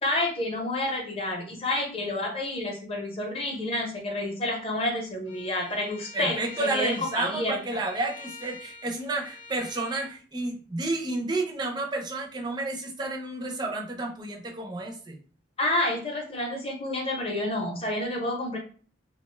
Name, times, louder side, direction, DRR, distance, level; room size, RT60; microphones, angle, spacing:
voice 1, 0.0-7.6 15.6-18.6, left 1 dB, 30° left, 1 dB, 0.6 m, -29 dB
Bowed string instrument, 5.3-10.1, left 3 dB, 75° left, 0.7 m, -45 dB
voice 2, 6.1-15.2, right 2 dB, 20° right, 1 dB, 0.4 m, -31 dB
2.4 x 2.1 x 3.2 m, 0.40 s
head